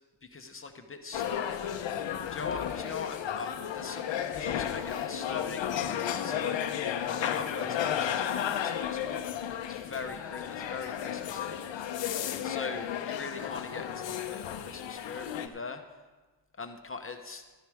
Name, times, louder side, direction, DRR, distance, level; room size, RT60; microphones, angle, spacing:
voice 1, 0.2-1.6 2.3-4.0 4.3-6.6 7.1-9.3 9.6-11.6 12.4-15.8 16.6-17.4, left 4 dB, 30° left, 5 dB, 1.0 m, -41 dB
sound 1, 1.1-15.5, left 9 dB, 90° left, 0.8 m, -33 dB
13.0 x 12.5 x 3.6 m, 1.3 s
cardioid pair, 105°, 43 cm